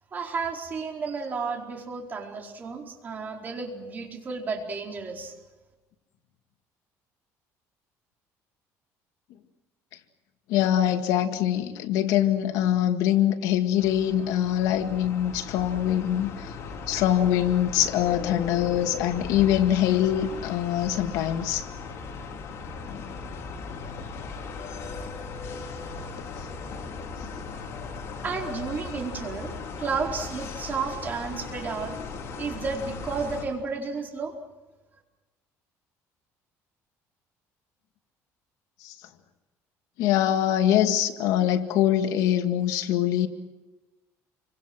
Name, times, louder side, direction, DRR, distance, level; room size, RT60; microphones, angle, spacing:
voice 1, 0.1-5.3 28.2-32.0 32.4-34.3, right 4 dB, 30° right, 1 dB, 4.6 m, -32 dB
voice 2, 10.5-16.5 16.9-21.7 22.9-23.0 38.8-38.9 40.0-43.3, left 11 dB, 85° left, 6 dB, 2.0 m, -23 dB
sound 1, 13.8-33.4, left 4 dB, 50° left, 4.6 m, -37 dB
28.0 x 25.0 x 6.2 m, 1.1 s
cardioid pair, 150°, 6 cm